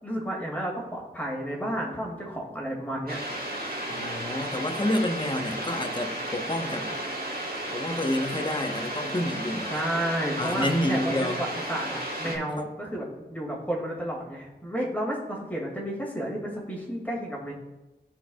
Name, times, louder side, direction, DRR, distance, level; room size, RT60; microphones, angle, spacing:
voice 1, 0.0-3.2 9.6-17.5, right 1 dB, 10° left, -3 dB, 2.4 m, -32 dB
sound 1, 3.1-12.4, right 1 dB, 55° right, 1.8 m, -33 dB
voice 2, 3.9-6.9 7.7-9.8 10.4-11.4 12.2-12.7, left 1 dB, 25° left, 4 dB, 1.1 m, -29 dB
14.0 x 4.7 x 2.4 m, 1.1 s
cardioid pair, 45°, 19 cm